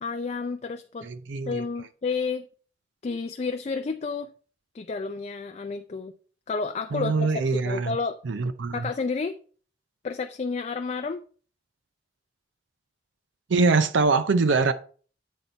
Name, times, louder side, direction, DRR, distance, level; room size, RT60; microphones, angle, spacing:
voice 1, 0.0-1.1 1.5-2.5 3.0-4.3 4.7-6.1 6.5-8.2 8.7-9.4 10.0-11.2, left 4 dB, 35° left, 0.4 m, -30 dB
voice 2, 1.0-1.6 6.9-7.9 8.2-8.9 13.5-14.7, right 4 dB, 85° right, 0.5 m, -23 dB
8.4 x 4.0 x 4.3 m
head